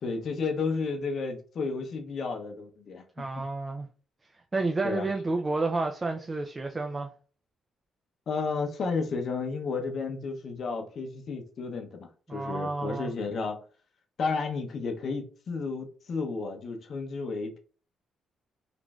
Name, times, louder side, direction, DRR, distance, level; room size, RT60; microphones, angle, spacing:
voice 1, 0.0-3.0 4.8-5.1 8.3-13.6 14.2-17.6, left 4 dB, 55° left, 0.6 m, -32 dB
voice 2, 3.2-3.9 4.5-7.1 12.3-13.1, right 3 dB, 25° right, 0.3 m, -30 dB
3.1 x 2.5 x 2.3 m
cardioid pair, 90°, 0 cm